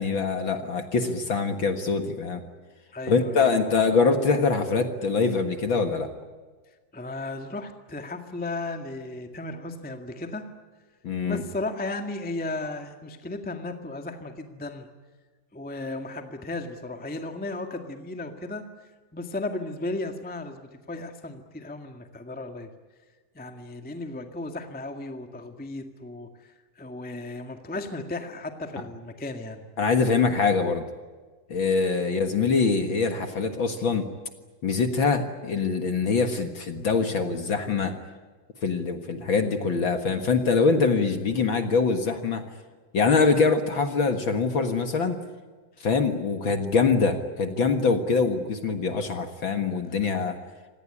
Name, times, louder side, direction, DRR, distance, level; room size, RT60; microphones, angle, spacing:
voice 1, 0.0-2.4 3.1-6.1 11.0-11.4 29.8-30.9 31.5-34.1 34.6-38.0 38.6-42.4 42.9-45.2 45.8-50.4, left 4 dB, 45° left, 7 dB, 1.8 m, -24 dB
voice 2, 2.9-3.7 6.9-10.4 11.2-14.9 15.5-18.6 19.1-22.7 23.3-29.6, left 2 dB, 5° left, 5 dB, 0.7 m, -35 dB
26.5 x 18.5 x 10.0 m, 1.4 s
omnidirectional pair, 3.8 m